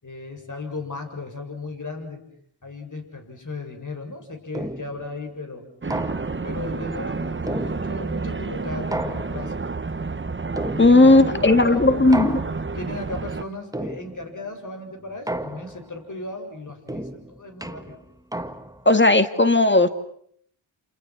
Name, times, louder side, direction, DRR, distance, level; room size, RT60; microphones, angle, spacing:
voice 1, 0.0-2.2 2.6-5.7 6.4-9.7 10.9-11.9 12.2-12.4 12.7-18.0, left 3 dB, 40° left, 5 dB, 7.4 m, -36 dB
sound 1, 4.5-5.1 5.9-6.6 7.5-8.2 8.9-9.7 10.6-11.3 12.1-12.9 13.7-14.4 15.3-16.0 16.9-18.9, right 1 dB, 5° right, 1.7 m, -33 dB
sound 2, 5.8-13.4, right 4 dB, 25° right, 1.1 m, -30 dB
voice 2, 10.8-12.4 18.9-19.9, left 2 dB, 25° left, 10 dB, 2.2 m, -15 dB
29.0 x 28.5 x 6.2 m, 0.66 s
cardioid pair, 55°, 49 cm